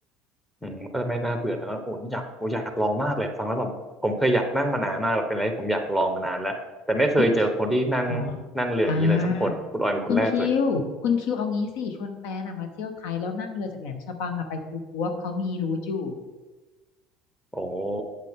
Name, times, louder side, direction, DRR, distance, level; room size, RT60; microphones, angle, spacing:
voice 1, 0.6-3.7 4.0-6.6 6.9-8.2 8.5-10.5 17.5-18.0, right 1 dB, 5° left, 5 dB, 1.1 m, -25 dB
voice 2, 8.8-9.5 10.1-16.2, left 5 dB, 70° left, 6 dB, 0.9 m, -27 dB
7.7 x 7.5 x 3.7 m, 1.2 s
hypercardioid pair, 75°, 0 cm